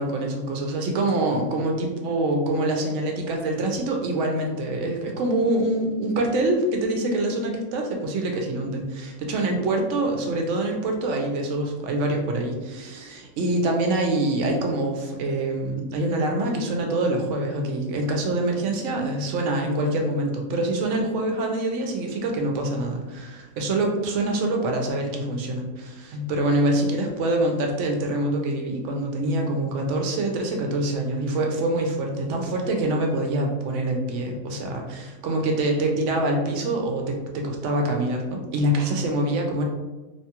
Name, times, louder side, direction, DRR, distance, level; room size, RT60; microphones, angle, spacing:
voice 1, 0.0-39.6, right 1 dB, 70° right, 2 dB, 0.8 m, -25 dB
2.9 x 2.2 x 2.8 m, 1.1 s
omnidirectional pair, 1.4 m